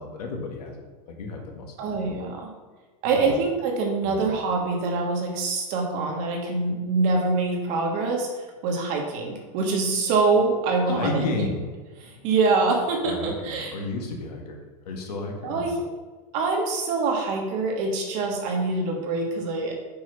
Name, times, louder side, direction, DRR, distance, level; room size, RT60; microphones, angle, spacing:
voice 1, 0.0-2.1 3.3-3.4 4.0-4.3 10.9-11.7 13.0-15.8, left 3 dB, 80° left, 2 dB, 1.7 m, -33 dB
voice 2, 1.8-2.5 3.0-8.3 8.6-11.2 12.0-13.7 15.4-15.8 16.3-19.7, right 3 dB, 40° right, 1 dB, 1.4 m, -25 dB
5.7 x 4.8 x 5.6 m, 1.3 s
supercardioid pair, 165°, 20 cm